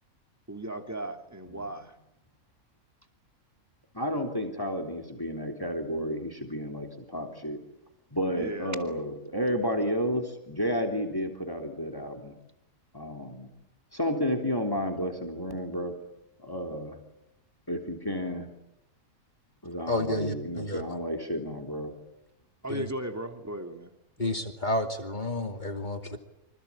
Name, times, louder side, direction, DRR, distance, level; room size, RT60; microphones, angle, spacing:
voice 1, 0.5-2.0 8.4-8.8 22.6-23.9 24.2-24.4, right 1 dB, 10° right, 6 dB, 2.5 m, -36 dB
voice 2, 3.9-7.6 8.1-12.3 12.9-13.5 13.9-15.9 16.4-17.0 17.7-18.5 19.6-21.9, equal, 15° left, 4 dB, 3.6 m, -31 dB
voice 3, 19.9-20.8 22.7-22.9 24.2-26.2, left 1 dB, 30° left, 5 dB, 2.8 m, -31 dB
26.5 x 26.0 x 8.7 m, 0.86 s
omnidirectional pair, 1.5 m